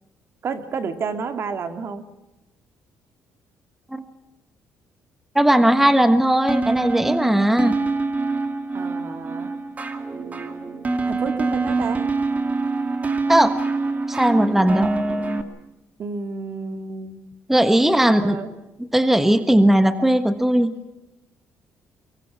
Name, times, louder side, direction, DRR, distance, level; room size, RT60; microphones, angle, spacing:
voice 1, 0.4-2.1 8.7-9.5 11.1-12.0 16.0-17.1 17.8-18.5, right 5 dB, 50° right, 8 dB, 2.1 m, -30 dB
voice 2, 5.3-7.7 13.3-13.5 14.1-14.9 17.5-18.4 18.9-20.7, right 1 dB, 5° right, 10 dB, 1.3 m, -17 dB
sound 1, 6.5-15.4, right 3 dB, 30° right, 2.4 m, -25 dB
24.5 x 22.5 x 6.0 m, 0.98 s
cardioid pair, 100°, 5 cm